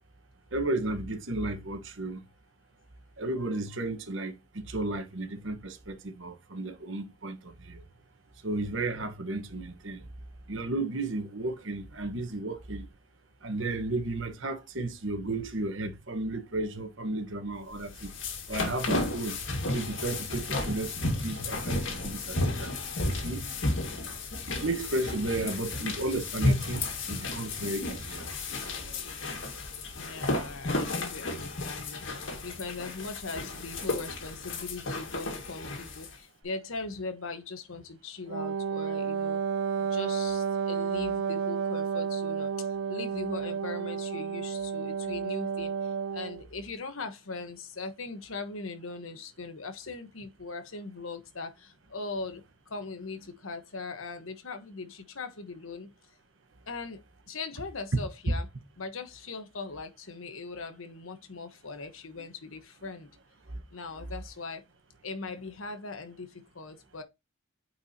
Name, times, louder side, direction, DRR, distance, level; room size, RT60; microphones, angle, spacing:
voice 1, 0.5-2.2 3.2-7.8 8.4-10.1 10.5-12.9 13.4-18.1 18.5-19.4 19.7-22.7 23.0-23.5 24.5-28.2 28.8-28.9, right 2 dB, 70° right, 1.3 m, -33 dB
sound 1, 17.7-36.1, left 2 dB, 65° left, 2.0 m, -33 dB
voice 2, 30.0-39.4 39.8-55.9 56.7-58.5 58.8-63.1 63.7-64.6 65.0-67.0, left 3 dB, 80° left, 1.2 m, -40 dB
Wind instrument woodwind instrument, 38.3-46.4, right 6 dB, 85° right, 0.3 m, -31 dB
9.0 x 4.6 x 2.8 m
head